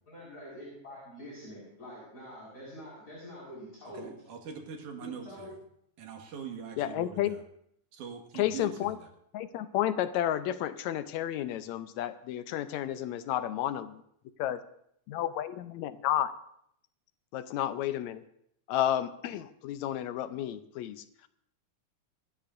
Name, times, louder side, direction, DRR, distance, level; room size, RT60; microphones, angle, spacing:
voice 1, 0.1-4.2 5.2-5.5, equal, 25° left, -7 dB, 5.5 m, -46 dB
voice 2, 3.9-5.5 6.0-7.4 7.9-8.9, right 6 dB, 85° right, 3 dB, 3.1 m, -42 dB
voice 3, 6.8-7.4 8.3-9.0 9.3-14.0 14.4-14.6 15.1-16.3 17.3-18.2 18.7-21.0, left 12 dB, 75° left, 12 dB, 1.9 m, -31 dB
26.0 x 11.5 x 2.6 m, 0.71 s
omnidirectional pair, 3.4 m